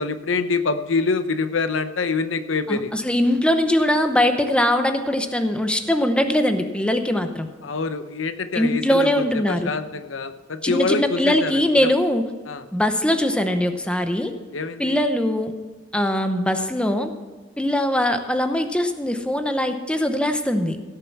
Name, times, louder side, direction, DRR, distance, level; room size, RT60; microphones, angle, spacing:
voice 1, 0.0-2.9 7.6-11.5 12.5-12.6 14.5-15.0, left 4 dB, 75° left, 10 dB, 0.8 m, -25 dB
voice 2, 2.7-7.5 8.5-9.7 10.6-12.3 12.7-14.3 14.8-15.5 15.9-17.1 17.6-20.8, left 1 dB, 5° left, 7 dB, 0.8 m, -21 dB
16.5 x 6.8 x 5.9 m, 1.3 s
head